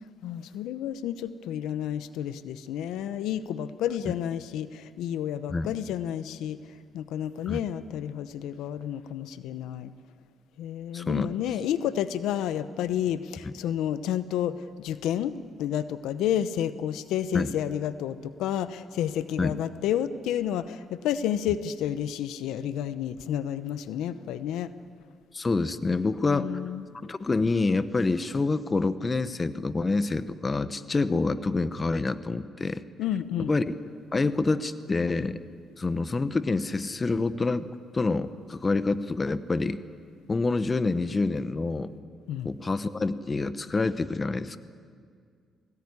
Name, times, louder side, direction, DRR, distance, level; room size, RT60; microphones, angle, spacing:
voice 1, 0.2-6.6 6.9-9.9 10.6-24.7 26.3-26.8 33.0-33.5 42.3-42.5, left 10 dB, 90° left, 13 dB, 0.8 m, -30 dB
voice 2, 10.9-11.3 17.3-17.5 19.4-19.6 25.3-26.6 27.0-32.8 33.4-33.8 34.1-35.4 35.8-37.7 37.9-39.8 40.3-41.9 42.4-44.6, left 3 dB, 30° left, 13 dB, 1.0 m, -27 dB
21.5 x 18.0 x 9.8 m, 2.1 s
cardioid pair, 90°, 0 cm